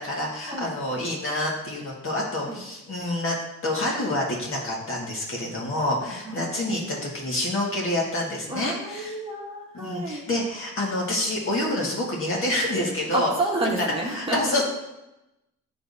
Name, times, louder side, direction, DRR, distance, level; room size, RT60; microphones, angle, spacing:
voice 1, 0.0-3.4 3.6-9.2 9.7-13.3 13.8-14.6, left 1 dB, 45° left, -3 dB, 1.9 m, -27 dB
voice 2, 8.5-10.3 13.1-14.4, right 2 dB, 20° right, -3 dB, 1.3 m, -29 dB
10.0 x 3.5 x 2.7 m, 0.93 s
cardioid pair, 90°, 30 cm